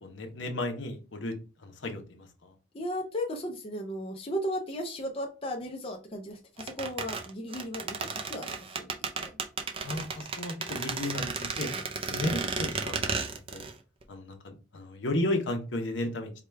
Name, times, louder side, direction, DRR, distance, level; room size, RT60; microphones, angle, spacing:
voice 1, 0.0-1.3 1.6-2.5 9.8-11.7 12.1-13.6 14.1-16.3, left 1 dB, 70° left, 4 dB, 0.8 m, -34 dB
voice 2, 2.7-9.3, equal, 30° left, 2 dB, 0.5 m, -36 dB
sound 1, 6.6-13.7 14.0-14.1, right 4 dB, 30° right, 0.4 m, -33 dB
4.7 x 2.3 x 3.3 m, 0.33 s
head